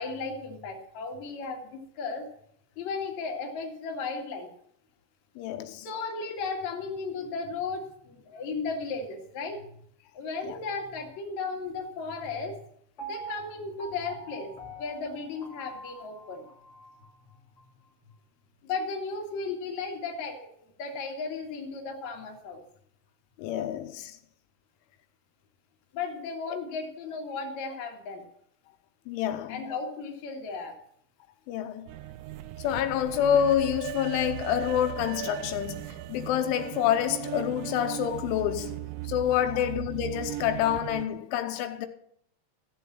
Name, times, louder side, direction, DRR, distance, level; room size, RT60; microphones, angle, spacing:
voice 1, 0.0-2.3 2.8-4.5 5.8-9.7 10.1-12.6 13.0-16.5 18.6-20.5 20.8-22.6 25.9-28.2 29.5-30.7 39.5-39.6, left 4 dB, 45° left, 2.7 m, -35 dB
voice 2, 5.4-5.9 10.5-10.6 23.4-24.2 29.1-29.6 31.5-31.9 32.6-41.9, left 10 dB, 85° left, 3.2 m, -28 dB
Piano, 13.0-17.1 17.6-17.7, right 3 dB, 30° left, 1.9 m, -43 dB
sound 1, 31.9-41.1, right 14 dB, 80° right, 2.8 m, -38 dB
15.0 x 7.1 x 7.5 m
omnidirectional pair, 5.6 m